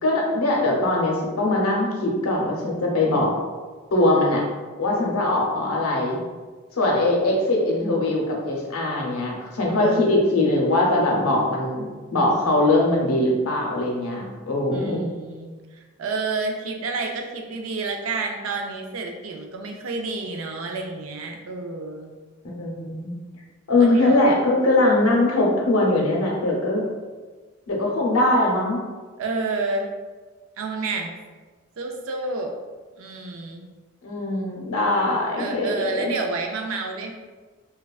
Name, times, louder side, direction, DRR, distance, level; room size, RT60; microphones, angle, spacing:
voice 1, 0.0-3.3 3.9-4.4 4.8-6.2 6.7-15.0 22.4-23.1 23.7-26.8 27.7-28.8 34.0-36.1, left 2 dB, 85° left, -1 dB, 0.6 m, -21 dB
voice 2, 9.8-10.2 14.7-22.1 23.8-24.2 29.2-29.9 30.6-31.1 31.8-32.6 33.0-33.6 35.4-37.1, right 3 dB, 70° right, 2 dB, 0.4 m, -29 dB
3.2 x 2.3 x 2.3 m, 1.4 s
head